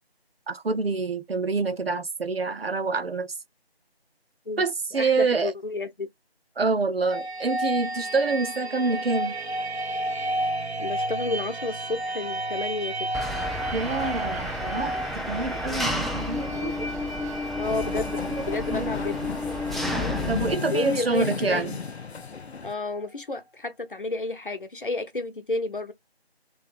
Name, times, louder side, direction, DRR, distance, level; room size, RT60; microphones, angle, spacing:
voice 1, 0.5-3.3 4.6-5.5 6.6-9.4 13.7-16.9 18.3-18.4 18.7-18.9 19.9-21.8, right 4 dB, 70° right, 0.6 m, -27 dB
voice 2, 4.9-6.1 10.8-13.1 15.6-15.8 17.6-19.3 20.7-21.7 22.6-25.9, left 2 dB, 55° left, 0.9 m, -31 dB
sound 1, 7.1-22.7, right 1 dB, 85° right, 1.1 m, -33 dB
Engine, 13.1-20.6, left 1 dB, ahead, 0.3 m, -31 dB
sound 2, 17.6-22.7, left 5 dB, 85° left, 0.6 m, -34 dB
3.1 x 2.8 x 3.6 m
figure-of-eight pair, 170°, 31 cm